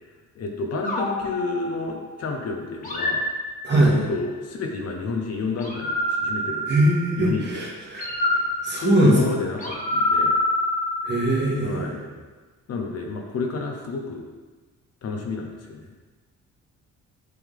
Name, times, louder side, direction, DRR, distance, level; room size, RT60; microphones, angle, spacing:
voice 1, 0.4-3.2 3.7-6.9 7.2-7.6 8.8-10.4 11.6-12.0 12.7-14.2 15.0-15.9, left 3 dB, 55° left, 2 dB, 0.9 m, -30 dB
sound 1, 0.8-2.2 2.8-4.1 5.6-7.3 8.0-11.5, left 1 dB, 25° left, 1.5 m, -27 dB
voice 2, 3.6-4.0 6.7-8.4 8.6-9.2 11.0-11.9, right 1 dB, 35° right, -4 dB, 1.8 m, -21 dB
7.8 x 3.5 x 3.7 m, 1.3 s
cardioid pair, 90°, 30 cm